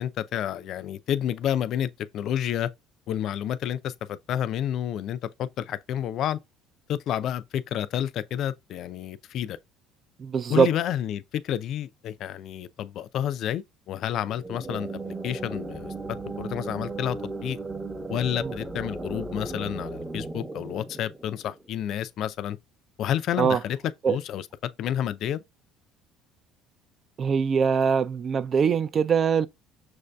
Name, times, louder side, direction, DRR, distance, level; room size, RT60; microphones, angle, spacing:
voice 1, 0.0-2.7 3.1-6.4 6.9-9.6 10.5-17.6 18.1-22.6 23.0-23.8 24.1-24.5 24.8-25.4, left 10 dB, 60° left, 0.3 m, -30 dB
voice 2, 10.2-10.7 18.4-18.5 23.4-23.6 24.0-24.2 27.2-29.5, right 6 dB, 40° right, 0.4 m, -22 dB
sound 1, 14.2-21.8, right 2 dB, 15° right, 0.7 m, -36 dB
6.2 x 2.6 x 2.2 m
supercardioid pair, 80°, 0 cm